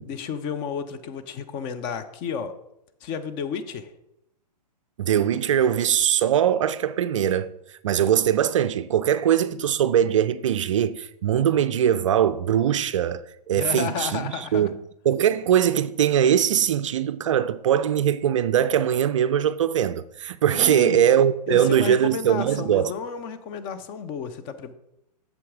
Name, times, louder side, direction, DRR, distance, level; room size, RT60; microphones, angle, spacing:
voice 1, 0.0-2.5 3.0-3.9 13.6-14.7 20.5-21.0 21.5-24.7, left 6 dB, 25° left, 0.5 m, -32 dB
voice 2, 5.0-7.5 7.8-14.8 15.0-22.9, right 9 dB, 50° right, 0.4 m, -21 dB
8.4 x 7.0 x 3.6 m
figure-of-eight pair, 110°, 21 cm